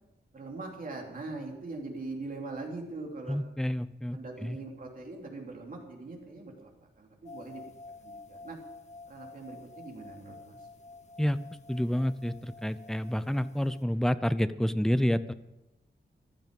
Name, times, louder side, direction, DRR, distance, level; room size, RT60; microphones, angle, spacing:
voice 1, 0.3-3.4 4.1-7.6 8.0-8.6 9.1-10.7, right 3 dB, 50° right, 1 dB, 2.9 m, -42 dB
voice 2, 3.3-4.6 11.2-11.4 11.7-15.3, equal, 5° left, 13 dB, 0.5 m, -29 dB
sound 1, 7.2-13.8, left 3 dB, 40° left, 1.1 m, -50 dB
15.0 x 12.5 x 5.3 m, 0.96 s
wide cardioid pair, 155°, 18 cm